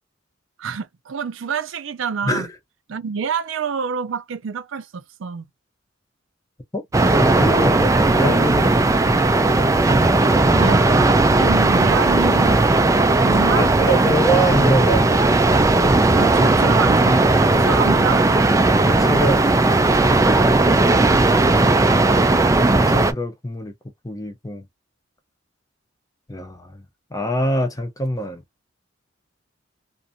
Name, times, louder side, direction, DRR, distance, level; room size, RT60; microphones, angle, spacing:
voice 1, 0.6-2.5 2.9-5.5 10.5-12.6 13.2-14.1 16.2-18.3, right 6 dB, 75° right, 0.5 m, -27 dB
sound 1, 6.9-23.1, right 2 dB, 15° right, 0.4 m, -16 dB
voice 2, 7.1-9.7 13.6-15.1 18.9-19.4 19.8-21.7 22.8-23.7 24.0-24.6 26.3-26.8 27.1-28.4, equal, 20° left, 0.7 m, -25 dB
2.6 x 2.5 x 2.6 m
head